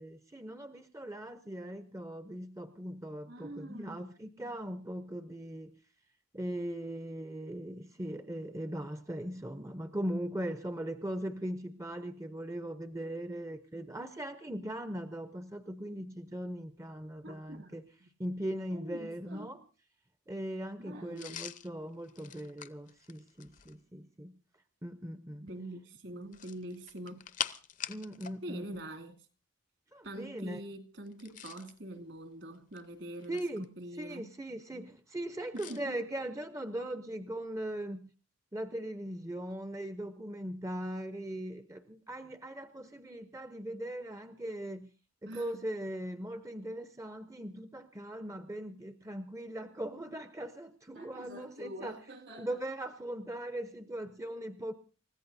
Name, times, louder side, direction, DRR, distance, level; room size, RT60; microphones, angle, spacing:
voice 1, 0.0-5.7 6.3-17.8 18.2-19.6 20.3-24.4 24.8-25.5 27.9-28.8 29.9-30.6 33.3-33.7 34.0-38.1 38.5-44.9 45.2-52.0 52.4-54.7, right 1 dB, 15° right, 0.6 m, -39 dB
voice 2, 3.3-4.2 17.2-18.1 18.7-19.5 20.8-21.4 25.4-27.3 28.4-29.2 30.0-34.3 35.5-36.0 45.3-45.6 50.9-52.6, right 1 dB, 60° right, 2.5 m, -45 dB
sound 1, 21.2-23.8 26.2-28.4 28.7-28.8 31.1-31.8 32.5-33.7 35.6-35.8, left 8 dB, 40° left, 0.7 m, -43 dB
29.0 x 15.0 x 2.6 m
head